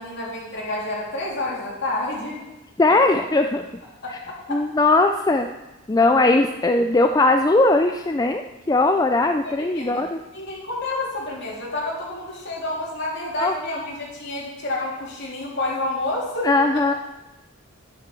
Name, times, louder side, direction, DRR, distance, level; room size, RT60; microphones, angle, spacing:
voice 1, 0.0-2.4 4.0-4.6 6.2-6.3 9.4-10.0 10.3-16.8, left 2 dB, 55° left, -4 dB, 3.6 m, -29 dB
voice 2, 2.8-3.7 4.5-5.5 5.9-10.2 13.4-13.5 16.4-16.9, left 2 dB, 15° left, 5 dB, 0.4 m, -19 dB
10.5 x 8.2 x 6.1 m, 1.0 s
head